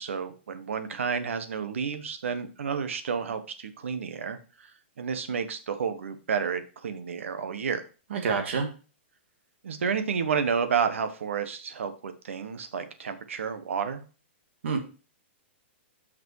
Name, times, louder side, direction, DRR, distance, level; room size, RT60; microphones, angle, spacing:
voice 1, 0.0-4.7 5.0-7.8 9.6-14.0, right 6 dB, 90° right, 10 dB, 1.1 m, -30 dB
voice 2, 8.1-8.7 14.6-14.8, right 5 dB, 70° right, 4 dB, 1.7 m, -27 dB
6.0 x 5.3 x 4.7 m, 0.34 s
hypercardioid pair, 160°, 7 cm